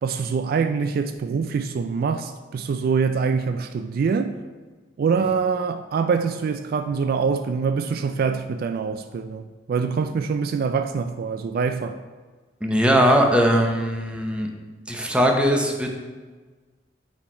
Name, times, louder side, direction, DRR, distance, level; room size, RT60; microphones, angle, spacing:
voice 1, 0.0-4.4 5.0-12.0, right 5 dB, 55° right, 0.3 m, -24 dB
voice 2, 12.6-14.5 14.9-15.9, equal, 5° right, 0.8 m, -20 dB
8.7 x 4.3 x 4.4 m
head